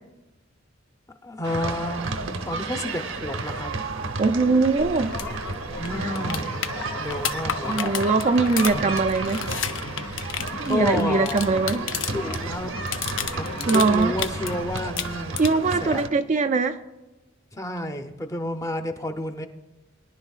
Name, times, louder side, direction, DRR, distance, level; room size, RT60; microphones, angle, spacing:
voice 1, 1.2-3.7 5.8-6.6 7.0-7.9 8.7-8.8 10.5-11.4 12.1-12.7 13.4-15.4 15.8-16.0 17.5-19.5, left 1 dB, 15° left, 0.7 m, -30 dB
sound 1, 1.4-16.1, right 3 dB, 80° right, 0.9 m, -32 dB
voice 2, 4.2-5.2 6.0-6.1 7.7-9.5 10.6-11.9 13.7-14.1 15.4-16.8, right 3 dB, 35° right, 0.4 m, -21 dB
sound 2, 4.8-14.8, left 3 dB, 90° left, 1.3 m, -37 dB
sound 3, 5.1-5.3 5.5-5.6 5.9-12.4 12.7-14.5 14.8-15.7 17.8-17.9, left 8 dB, 70° left, 0.7 m, -31 dB
22.0 x 11.0 x 2.4 m
head